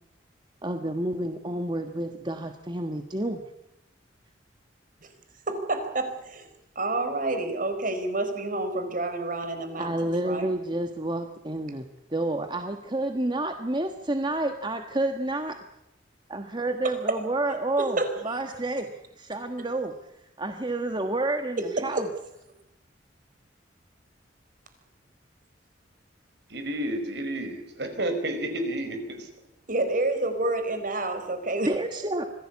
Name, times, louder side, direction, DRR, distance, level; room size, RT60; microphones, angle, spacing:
voice 1, 0.6-3.4 9.8-15.6 16.3-18.0 18.2-18.9 19.2-19.9 20.4-22.1 31.7-32.3, right 2 dB, 25° right, 6 dB, 1.3 m, -29 dB
voice 2, 5.5-6.5 6.7-10.5 16.8-16.9 17.8-18.4 21.6-22.0 29.7-31.7, right 2 dB, 45° right, 8 dB, 4.4 m, -29 dB
voice 3, 26.5-29.3, right 1 dB, 60° right, 8 dB, 5.0 m, -31 dB
25.5 x 17.5 x 8.4 m, 0.85 s
head